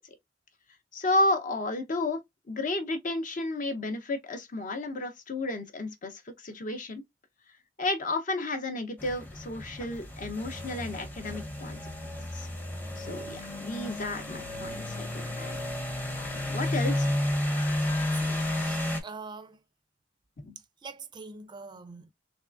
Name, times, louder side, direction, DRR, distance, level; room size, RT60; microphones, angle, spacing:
voice 1, 0.9-2.2 2.5-7.0 7.8-11.8 12.3-12.5 13.0-15.6 16.3-17.1 20.4-20.6, left 2 dB, 45° left, 0.7 m, -32 dB
sound 1, 9.0-19.0, left 1 dB, 10° left, 0.7 m, -32 dB
voice 2, 17.8-19.6 20.8-22.1, right 4 dB, 25° right, 0.4 m, -44 dB
3.5 x 3.2 x 2.4 m
head